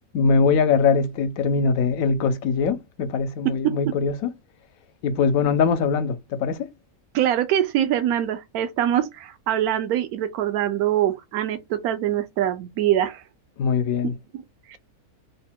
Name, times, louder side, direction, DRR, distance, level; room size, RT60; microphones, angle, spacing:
voice 1, 0.1-4.3 5.0-6.7 13.6-14.1, left 5 dB, 70° left, 1.0 m, -22 dB
voice 2, 7.1-13.2 14.7-14.8, right 11 dB, 80° right, 1.1 m, -23 dB
3.3 x 2.2 x 4.2 m
omnidirectional pair, 1.5 m